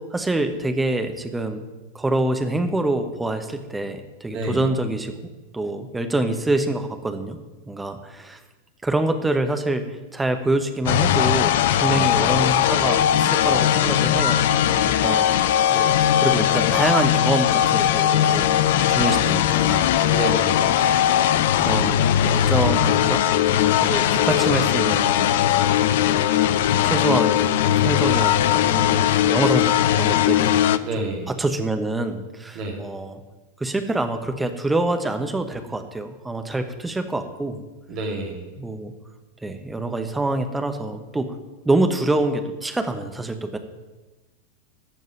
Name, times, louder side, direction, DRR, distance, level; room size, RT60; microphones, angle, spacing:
voice 1, 0.1-1.6 1.9-5.1 5.5-7.4 7.7-8.4 8.8-14.5 15.0-15.3 15.7-18.5 18.9-19.9 20.7-21.0 21.6-25.4 26.0-26.3 26.8-30.5 31.0-33.2 33.6-37.6 38.6-38.9 39.4-41.3 41.6-43.6, right 2 dB, 10° right, 7 dB, 1.1 m, -26 dB
voice 2, 4.3-4.6 11.8-12.1 20.1-20.7 30.8-31.3 32.5-32.8 37.9-38.4, right 2 dB, 40° right, 0 dB, 2.4 m, -29 dB
sound 1, 10.9-30.8, left 11 dB, 55° left, 0.5 m, -19 dB
14.5 x 5.4 x 9.2 m, 1.2 s
figure-of-eight pair, 90°, 0 cm